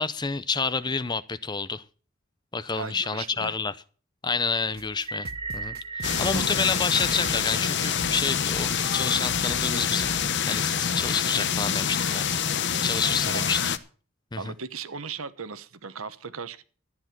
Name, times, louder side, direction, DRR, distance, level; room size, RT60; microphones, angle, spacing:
voice 1, 0.0-1.8 2.5-3.8 4.2-5.3 5.5-12.4 12.8-13.6 14.3-14.5, left 4 dB, 20° left, 16 dB, 0.6 m, -29 dB
voice 2, 2.7-3.5 6.3-6.5 13.2-13.4 14.4-16.6, right 5 dB, 75° right, 13 dB, 1.1 m, -37 dB
sound 1, 4.8-10.3, right 3 dB, 45° right, 1.0 m, -43 dB
sound 2, 5.0-9.3, right 4 dB, 25° right, 0.8 m, -39 dB
sound 3, 6.0-13.8, left 7 dB, 55° left, 0.9 m, -26 dB
13.5 x 10.0 x 6.0 m, 0.39 s
head